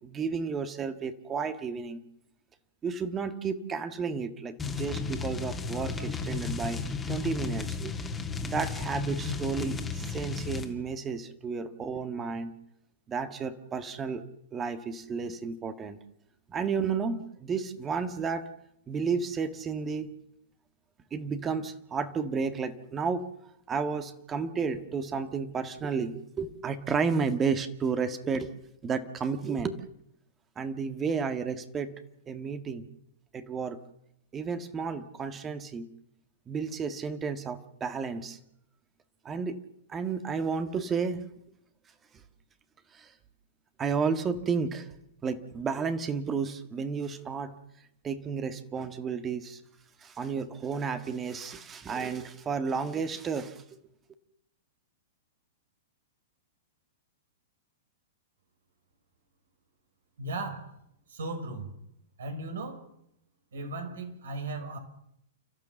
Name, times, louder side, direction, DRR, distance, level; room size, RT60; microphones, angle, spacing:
voice 1, 0.0-2.0 2.8-6.8 7.1-7.9 8.4-12.5 13.1-16.0 16.5-18.4 18.9-20.1 21.1-23.3 23.7-28.5 28.8-29.8 30.6-31.9 32.3-32.8 33.3-33.8 34.3-35.9 36.5-38.4 39.3-39.6 39.9-41.2 42.9-43.1 43.8-44.9 45.2-47.6 48.0-49.6 50.0-53.6, right 5 dB, 20° right, 9 dB, 1.8 m, -32 dB
sound 1, 4.6-10.7, left 5 dB, 15° left, 2.5 m, -34 dB
voice 2, 60.2-60.7 61.1-61.7 62.2-62.8 63.5-64.8, right 2 dB, 70° right, 5 dB, 5.6 m, -36 dB
30.0 x 13.5 x 7.2 m, 0.77 s
figure-of-eight pair, 105°, 0 cm